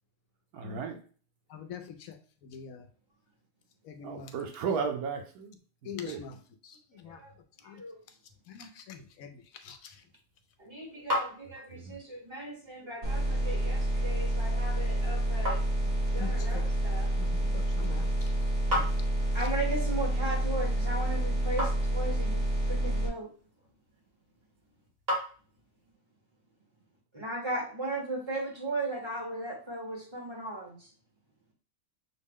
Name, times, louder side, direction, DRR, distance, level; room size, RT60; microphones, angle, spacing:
voice 1, 0.5-1.0 4.0-5.6 5.8-6.2 11.7-12.0, right 6 dB, 85° right, 4 dB, 1.2 m, -34 dB
voice 2, 1.5-2.2 2.4-2.9 3.8-4.3 5.8-6.4 6.6-7.2 7.6-7.8 8.5-10.0 16.2-16.6 17.2-18.3 18.7-18.9, left 7 dB, 75° left, 7 dB, 1.0 m, -44 dB
sound 1, 10.2-25.9, equal, 45° right, 1.6 m, -40 dB
voice 3, 10.6-15.6 16.1-17.1 19.3-23.3 27.1-30.9, right 2 dB, 20° right, -1 dB, 1.1 m, -37 dB
sound 2, 13.0-23.1, right 1 dB, 65° right, 2.2 m, -28 dB
6.2 x 2.1 x 3.5 m, 0.40 s
omnidirectional pair, 1.5 m